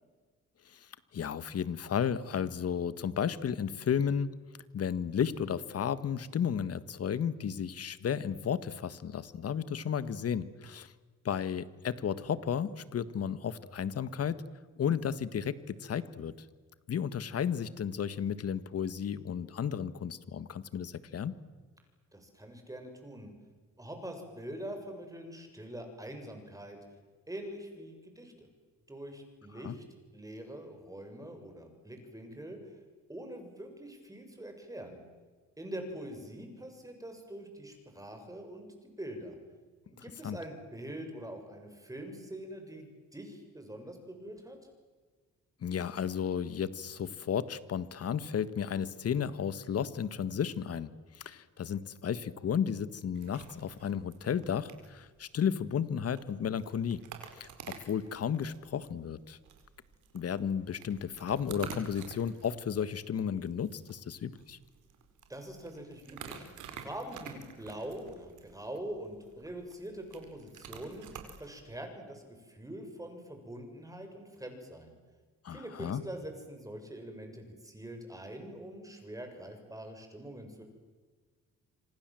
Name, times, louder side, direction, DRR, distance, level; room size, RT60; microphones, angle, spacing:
voice 1, 0.6-4.3 4.7-10.9 11.2-14.4 14.8-16.3 16.9-21.4 29.6-29.7 40.2-40.4 45.6-50.9 51.1-57.0 57.4-59.4 60.1-64.6 75.4-76.0, left 8 dB, 50° left, 15 dB, 1.6 m, -33 dB
voice 2, 22.1-23.3 23.8-26.8 27.3-28.5 28.9-29.8 30.1-32.8 33.1-35.0 35.6-39.4 39.9-44.6 65.3-66.4 66.8-75.0 75.5-80.6, right 1 dB, 10° right, 5 dB, 7.1 m, -44 dB
sound 1, 53.1-71.7, right 6 dB, 75° right, 4.7 m, -50 dB
27.0 x 26.0 x 7.8 m, 1.4 s
cardioid pair, 90°, 30 cm